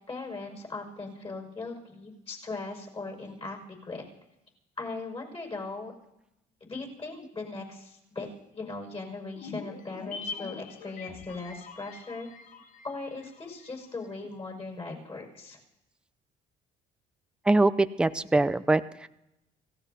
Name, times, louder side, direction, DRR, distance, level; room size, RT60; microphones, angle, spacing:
voice 1, 0.1-4.0 4.8-5.9 6.6-8.3 8.5-12.3 12.8-15.6, left 3 dB, 35° left, -1 dB, 5.8 m, -39 dB
sound 1, 9.4-13.9 14.1-14.2, left 5 dB, 55° left, 1.2 m, -43 dB
voice 2, 17.5-19.1, right 2 dB, 5° right, 11 dB, 0.5 m, -23 dB
29.5 x 16.0 x 2.8 m, 0.90 s
cardioid pair, 110°, 17 cm